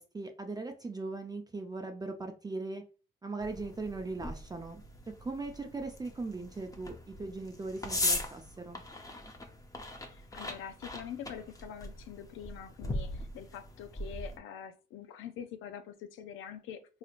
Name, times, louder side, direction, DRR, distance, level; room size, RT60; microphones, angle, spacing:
voice 1, 0.0-2.8 3.2-4.8 5.2-8.8, right 3 dB, 20° right, 0.5 m, -39 dB
sound 1, 3.4-14.4, left 1 dB, 15° left, 0.7 m, -39 dB
voice 2, 10.1-17.0, left 9 dB, 85° left, 0.4 m, -45 dB
4.0 x 3.0 x 2.4 m
cardioid pair, 90°, 20 cm